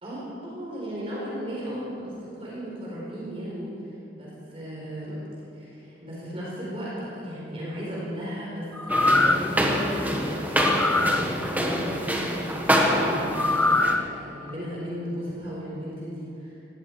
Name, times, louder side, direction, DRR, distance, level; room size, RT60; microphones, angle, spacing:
voice 1, 0.0-5.2 5.5-8.7 9.0-16.6, equal, 30° right, -6 dB, 4.4 m, -36 dB
sound 1, 8.8-9.5 10.6-11.2 13.3-14.0 14.5-14.6, left 2 dB, 10° left, 0.3 m, -22 dB
sound 2, 8.9-14.0, equal, 10° right, 1.4 m, -25 dB
18.0 x 17.0 x 4.8 m, 2.8 s
head